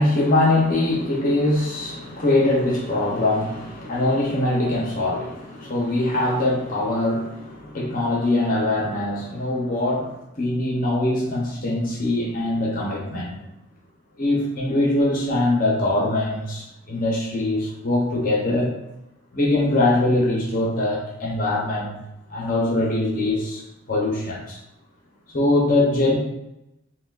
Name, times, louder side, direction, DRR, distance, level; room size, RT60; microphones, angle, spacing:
voice 1, 0.0-13.4 14.2-18.7 19.3-22.0 22.3-23.6 23.9-24.6 25.3-26.2, left 2 dB, 40° left, -3 dB, 0.8 m, -22 dB
5.9 x 2.2 x 2.4 m, 0.88 s
head